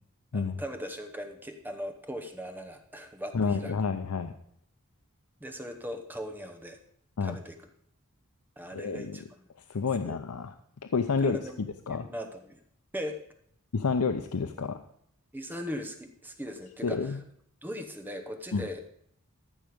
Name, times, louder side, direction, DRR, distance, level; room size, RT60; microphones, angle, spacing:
voice 1, 0.3-3.7 5.4-6.8 7.2-7.5 8.6-9.2 10.1-10.2 11.2-12.6 12.9-13.2 15.3-17.2 17.6-18.9, equal, 10° right, 6 dB, 0.8 m, -39 dB
voice 2, 3.3-4.3 7.2-7.4 8.7-9.2 9.7-10.5 10.9-11.4 11.9-12.1 13.7-14.8 16.8-17.2 18.5-18.7, left 5 dB, 90° left, 8 dB, 0.6 m, -29 dB
14.0 x 6.4 x 5.1 m, 0.67 s
head